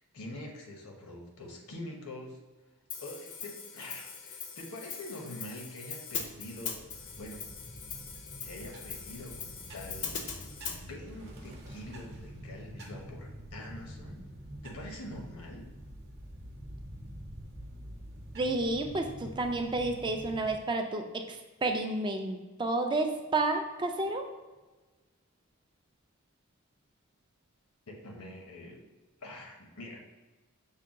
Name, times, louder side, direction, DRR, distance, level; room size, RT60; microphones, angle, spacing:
voice 1, 0.0-2.4 3.0-6.8 7.2-7.4 8.4-10.2 10.6-14.2 14.6-15.7 27.9-28.8 29.2-30.0, left 1 dB, 85° left, 1 dB, 0.9 m, -45 dB
Hi-hat, 2.9-10.8, left 6 dB, 55° left, 0.5 m, -41 dB
sound 1, 6.1-20.5, equal, 50° right, 0.8 m, -47 dB
voice 2, 18.4-24.3, right 2 dB, 20° right, 4 dB, 0.3 m, -31 dB
5.6 x 2.2 x 3.6 m, 1.2 s
head